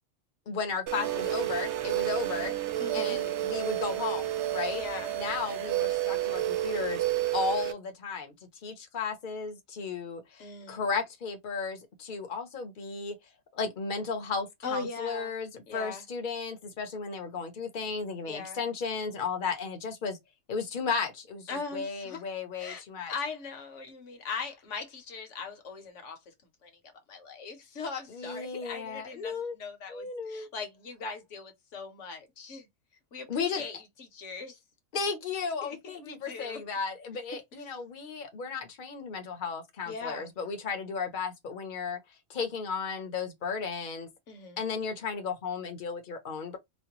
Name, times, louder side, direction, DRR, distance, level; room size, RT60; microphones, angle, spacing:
voice 1, 0.5-2.5 2.9-4.8 5.2-7.1 7.3-8.3 8.6-13.2 13.5-20.2 20.5-23.1 28.1-29.5 29.9-30.5 33.3-33.6 34.9-42.0 42.3-44.1 44.6-46.6, left 5 dB, 45° left, 0.9 m, -34 dB
sound 1, 0.9-7.7, right 14 dB, 65° right, 0.9 m, -30 dB
voice 2, 2.8-3.2 4.7-5.1 10.4-10.8 14.6-15.3 15.7-16.0 18.3-18.6 21.5-22.2 22.6-22.8 23.1-26.2 26.6-26.7 27.1-32.7 33.1-34.6 35.6-36.6 39.9-40.3 44.3-44.6, left 5 dB, 70° left, 1.3 m, -40 dB
4.2 x 2.2 x 3.0 m
omnidirectional pair, 1.3 m